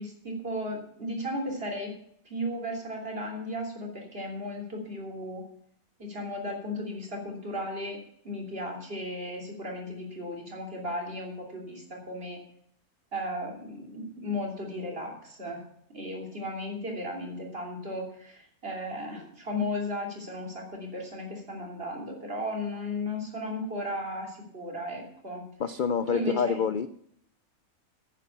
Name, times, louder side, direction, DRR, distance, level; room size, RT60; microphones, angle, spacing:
voice 1, 0.0-1.9 2.3-5.4 6.0-8.0 8.2-12.4 13.1-15.6 15.9-25.4 26.1-26.6, left 1 dB, 40° right, 1 dB, 3.6 m, -35 dB
voice 2, 25.6-26.9, left 6 dB, 60° left, 13 dB, 0.5 m, -27 dB
10.5 x 9.1 x 7.1 m, 0.68 s
omnidirectional pair, 1.5 m